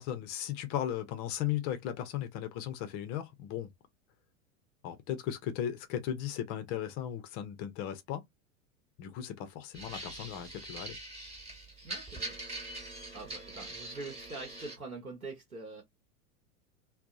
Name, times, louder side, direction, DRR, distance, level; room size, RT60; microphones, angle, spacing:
voice 1, 0.0-3.7 4.8-8.2 9.0-11.0, left 10 dB, 25° left, 0.4 m, -36 dB
sound 1, 9.7-14.8, right 2 dB, 15° right, 1.0 m, -43 dB
voice 2, 11.8-12.3 13.1-15.8, right 3 dB, 90° right, 0.9 m, -44 dB
2.6 x 2.0 x 2.3 m
figure-of-eight pair, 90°, 42 cm